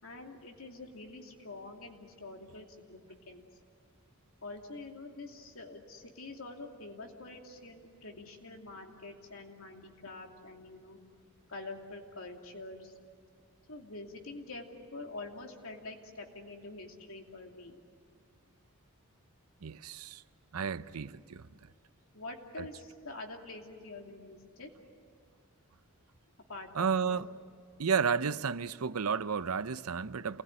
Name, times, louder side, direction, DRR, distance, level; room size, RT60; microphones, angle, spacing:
voice 1, 0.0-3.0 3.3-3.5 4.4-11.0 11.5-12.9 13.7-17.8 22.1-24.7 26.5-27.2, left 2 dB, 70° left, 2.8 m, -46 dB
voice 2, 19.6-20.2 20.5-21.5 22.6-22.7 26.7-27.3 27.8-30.4, right 6 dB, 85° right, 0.7 m, -32 dB
28.5 x 20.5 x 10.0 m
head